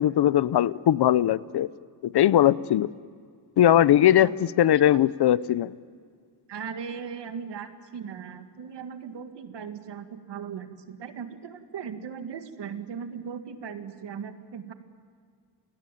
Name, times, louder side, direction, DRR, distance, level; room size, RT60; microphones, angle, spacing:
voice 1, 0.0-1.7 2.0-2.9 3.6-4.3 4.6-5.7, left 11 dB, 65° left, 19 dB, 0.7 m, -20 dB
voice 2, 4.6-5.0 6.5-14.7, right 7 dB, 75° right, 8 dB, 2.0 m, -38 dB
27.5 x 20.5 x 9.1 m, 2.1 s
wide cardioid pair, 170°, 42 cm